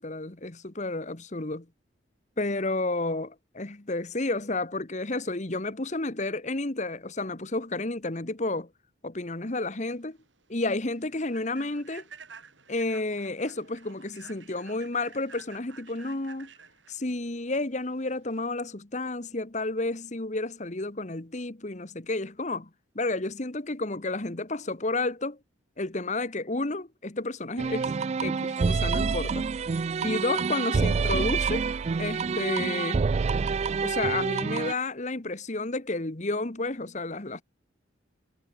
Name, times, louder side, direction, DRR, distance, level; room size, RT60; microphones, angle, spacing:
voice 1, 0.0-1.6 2.4-8.7 9.0-10.2 10.5-12.0 12.7-16.5 16.9-22.7 22.9-25.4 25.8-27.9 28.2-29.4 30.0-31.7 32.0-33.0 33.8-37.4, left 2 dB, 40° left, 1.4 m, -31 dB
Human voice / Train, 9.6-18.5, right 5 dB, 80° right, 7.8 m, -51 dB
sound 1, 27.6-34.7, right 5 dB, 35° right, 0.3 m, -27 dB
head